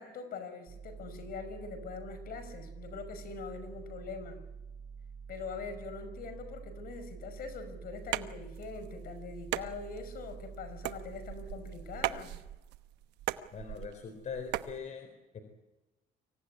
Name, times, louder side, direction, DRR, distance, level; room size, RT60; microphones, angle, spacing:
voice 1, 0.0-4.4 5.3-12.3, left 4 dB, 65° left, 9 dB, 5.6 m, -43 dB
sound 1, 0.7-12.1, right 6 dB, 35° right, 4.5 m, -47 dB
sound 2, 8.0-14.8, right 14 dB, 85° right, 1.0 m, -39 dB
voice 2, 13.5-15.4, left 6 dB, 45° left, 7 dB, 4.1 m, -42 dB
25.0 x 17.0 x 9.8 m, 1.1 s
cardioid pair, 110°, 17 cm